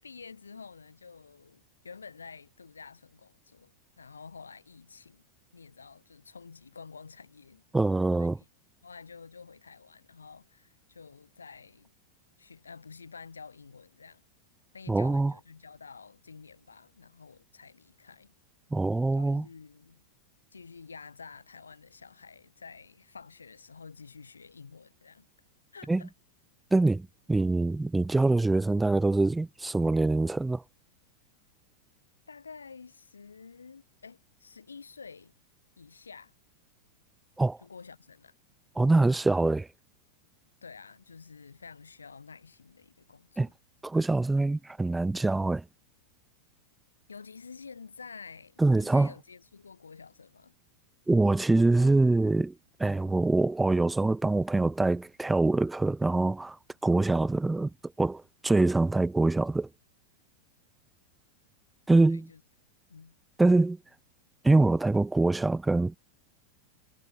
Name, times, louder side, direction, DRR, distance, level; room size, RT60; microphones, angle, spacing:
voice 1, 0.0-5.3 5.5-7.6 8.2-8.5 8.8-11.9 12.4-14.2 14.7-18.3 19.1-20.1 20.5-25.3 25.7-26.1 32.3-35.3 35.8-36.3 37.6-38.3 40.6-43.5 47.1-50.5 62.1-62.4 62.9-63.2, left 5 dB, 75° left, 7.0 m, -49 dB
voice 2, 7.7-8.4 14.9-15.3 18.7-19.5 25.9-26.0 26.7-30.6 37.4-37.6 38.8-39.7 43.4-43.5 43.8-45.6 48.6-49.1 51.1-52.5 52.8-56.6 56.8-57.7 58.0-59.7 61.9-62.3 63.4-63.8 64.4-66.0, right 2 dB, 10° right, 0.5 m, -24 dB
figure-of-eight pair, 90°, 0 cm